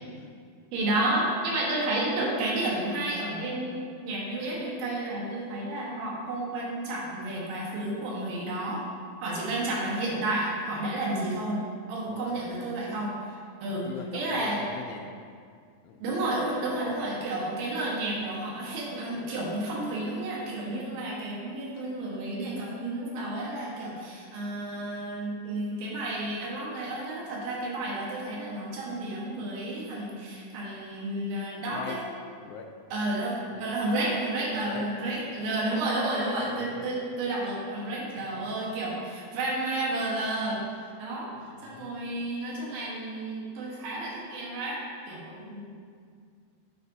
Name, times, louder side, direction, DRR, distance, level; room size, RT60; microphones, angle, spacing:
voice 1, 0.0-0.3 12.1-12.7 13.7-15.1 15.8-16.0 16.7-17.0 31.7-32.0 32.4-32.7 33.5-33.7 34.5-34.9 36.2-36.9 41.4-42.0, left 6 dB, 85° left, 4 dB, 2.5 m, -42 dB
voice 2, 0.7-8.8 9.2-11.6 11.9-13.1 13.6-14.6 16.0-32.0 32.9-40.6 41.0-41.3 41.6-44.8 45.1-45.6, right 1 dB, 65° right, -4 dB, 2.9 m, -31 dB
8.3 x 8.3 x 2.7 m, 2.1 s
omnidirectional pair, 4.6 m